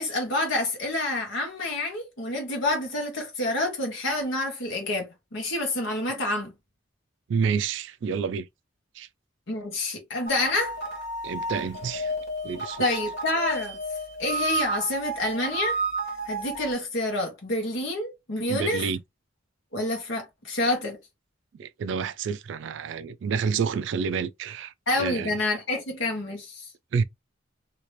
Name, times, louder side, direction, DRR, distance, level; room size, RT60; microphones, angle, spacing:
voice 1, 0.0-6.5 9.5-10.7 12.8-13.8 14.2-15.8 16.3-18.9 19.7-21.0 24.9-26.6, left 2 dB, 70° left, 1.3 m, -28 dB
voice 2, 7.3-8.5 9.0-9.1 11.2-12.1 12.4-12.9 18.5-19.0 21.6-25.3 26.9-27.0, right 6 dB, 65° right, 0.3 m, -29 dB
sound 1, 10.3-16.7, right 2 dB, 50° left, 1.5 m, -31 dB
2.9 x 2.8 x 3.1 m
head